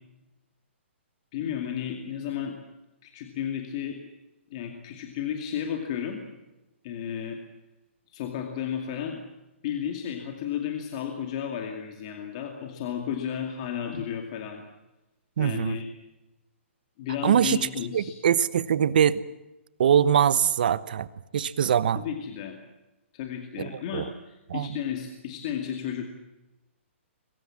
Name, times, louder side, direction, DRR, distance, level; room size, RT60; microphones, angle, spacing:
voice 1, 1.3-2.6 3.0-4.0 4.5-6.2 6.8-7.4 8.1-9.2 9.6-14.6 15.4-15.9 17.0-18.1 21.9-22.6 23.1-26.1, left 9 dB, 25° left, 4 dB, 2.3 m, -33 dB
voice 2, 15.4-15.8 17.2-17.6 17.9-19.2 19.8-21.1 21.3-22.0 23.6-24.0 24.5-24.8, right 8 dB, 40° right, 17 dB, 1.0 m, -23 dB
23.0 x 22.5 x 7.4 m, 1.0 s
hypercardioid pair, 175°, 7 cm